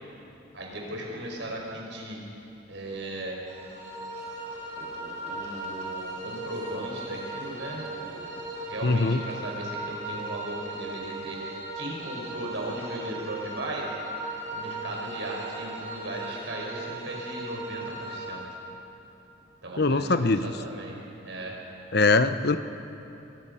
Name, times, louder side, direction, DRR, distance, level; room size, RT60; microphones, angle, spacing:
voice 1, 0.5-2.2 2.7-3.4 4.8-14.2 14.5-18.4 19.6-21.0 21.2-21.6, right 1 dB, 65° right, -1 dB, 5.3 m, -37 dB
sound 1, 3.5-18.3, right 2 dB, 35° right, 4.9 m, -37 dB
voice 2, 8.8-9.2 19.8-20.5 21.9-22.6, left 3 dB, 50° left, 11 dB, 0.8 m, -22 dB
24.5 x 23.0 x 5.7 m, 2.9 s
head